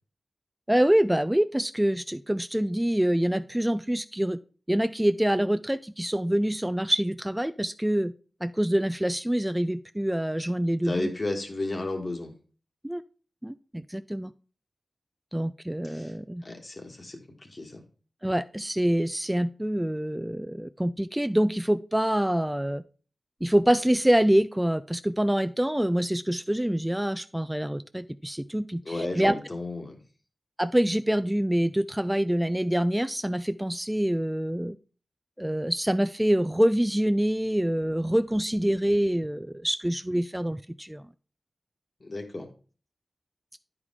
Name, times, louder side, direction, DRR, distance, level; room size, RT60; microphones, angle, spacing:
voice 1, 0.7-4.4 4.7-8.1 8.4-11.1 12.8-13.0 13.4-14.3 15.3-16.4 18.2-22.8 23.4-29.3 30.6-34.8 35.4-41.0, right 1 dB, 10° right, 13 dB, 0.3 m, -26 dB
voice 2, 10.8-12.3 15.8-16.1 16.4-17.8 28.8-30.0 42.0-42.5, left 2 dB, 50° left, 4 dB, 1.5 m, -33 dB
9.4 x 4.8 x 3.7 m, 0.38 s
cardioid pair, 55°, 0 cm